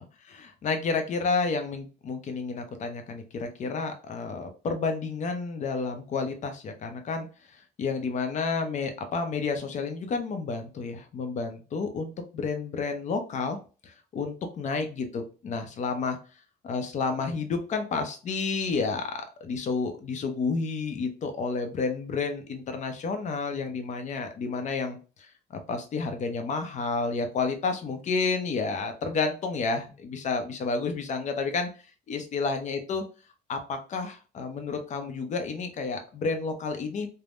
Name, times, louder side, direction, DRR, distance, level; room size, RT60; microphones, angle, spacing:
voice 1, 0.3-7.3 7.8-13.6 13.8-16.2 16.6-25.3 25.7-31.7 32.1-33.0 33.5-37.1, left 4 dB, 45° left, 6 dB, 0.6 m, -30 dB
3.4 x 2.1 x 2.5 m, 0.34 s
cardioid pair, 110°, 17 cm